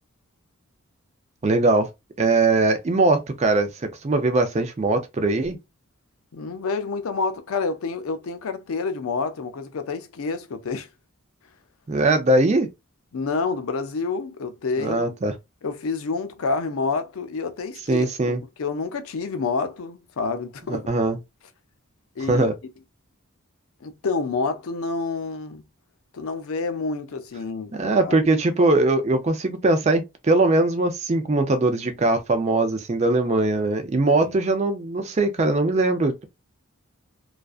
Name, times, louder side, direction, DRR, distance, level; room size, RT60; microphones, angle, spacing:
voice 1, 1.4-1.9 2.2-5.6 11.9-12.7 14.8-15.4 17.9-18.4 20.7-21.2 22.3-22.5 27.7-36.3, right 2 dB, 30° right, 0.4 m, -21 dB
voice 2, 6.3-10.9 13.1-15.1 15.6-18.3 18.6-20.9 22.2-22.5 23.8-25.6 26.1-28.3 34.2-34.4, left 4 dB, 70° left, 0.5 m, -28 dB
2.4 x 2.2 x 2.3 m
head